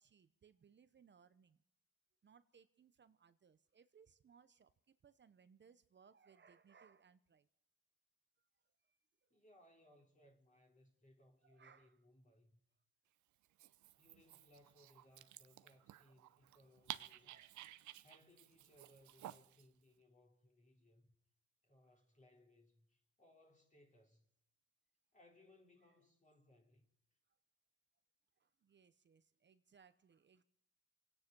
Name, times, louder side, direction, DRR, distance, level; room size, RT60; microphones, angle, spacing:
voice 1, 0.0-1.6 2.2-7.5 8.8-9.4 11.4-12.0 17.3-17.6 21.9-22.0 28.4-30.4, right 6 dB, 40° right, 0.8 m, -68 dB
voice 2, 9.3-12.6 14.0-17.5 18.0-21.1 21.6-24.3 25.1-26.9, left 1 dB, 25° left, 3.2 m, -68 dB
Dog, 13.4-19.7, right 14 dB, 70° right, 0.7 m, -54 dB
27.5 x 9.7 x 5.4 m
cardioid pair, 90°, 30 cm